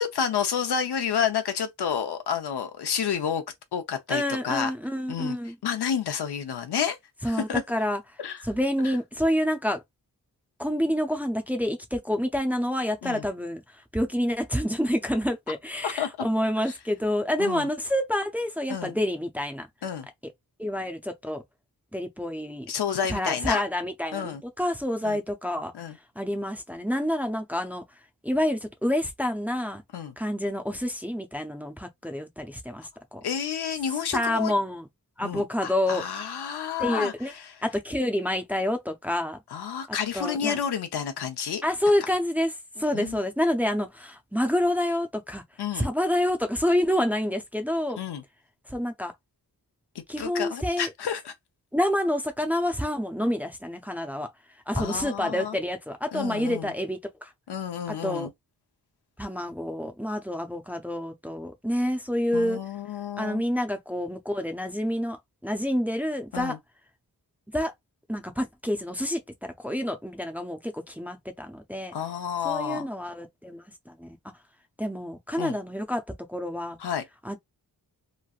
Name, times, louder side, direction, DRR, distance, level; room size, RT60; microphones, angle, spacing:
voice 1, 0.0-3.4 3.7-4.7 5.1-5.4 5.6-7.0 7.2-7.6 8.2-8.4 13.0-13.3 15.8-16.3 16.7-16.8 17.4-17.7 18.7-18.9 19.8-20.1 22.7-23.6 24.1-24.4 25.0-25.2 25.7-26.0 29.9-30.1 33.2-34.5 35.2-37.1 39.5-41.6 42.9-43.2 45.6-45.9 48.0-48.2 49.9-51.3 54.8-55.6 56.1-56.7 57.5-58.3 62.3-63.4 66.3-66.6 71.9-72.9 75.4-75.6 76.8-77.0, left 8 dB, 90° left, 0.8 m, -30 dB
voice 2, 4.1-5.6 7.2-8.0 8.4-9.8 10.6-19.7 20.6-21.4 21.9-22.7 23.1-25.7 26.2-27.8 28.2-29.8 30.2-33.2 34.1-34.9 35.2-36.0 36.8-37.3 37.6-39.4 39.9-40.6 41.6-45.4 45.7-48.0 48.7-49.1 50.1-50.9 51.7-54.3 54.7-57.3 57.9-58.3 59.2-62.6 63.2-66.6 67.5-67.7 68.1-71.9 72.4-74.2 74.8-76.0 76.3-76.8 77.2-77.4, left 1 dB, 5° right, 0.5 m, -28 dB
3.1 x 2.6 x 2.4 m
wide cardioid pair, 110°, 38 cm